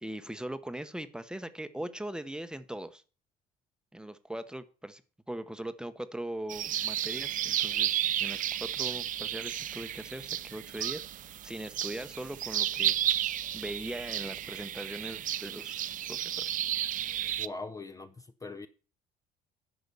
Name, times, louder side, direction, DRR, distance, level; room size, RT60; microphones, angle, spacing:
voice 1, 0.0-3.0 3.9-5.0 5.3-13.2 13.5-16.7, right 1 dB, 5° right, 0.9 m, -40 dB
sound 1, 6.5-17.5, right 11 dB, 50° right, 0.5 m, -32 dB
voice 2, 17.4-18.7, left 3 dB, 20° left, 0.7 m, -41 dB
10.5 x 5.9 x 6.8 m
cardioid pair, 110°, 17 cm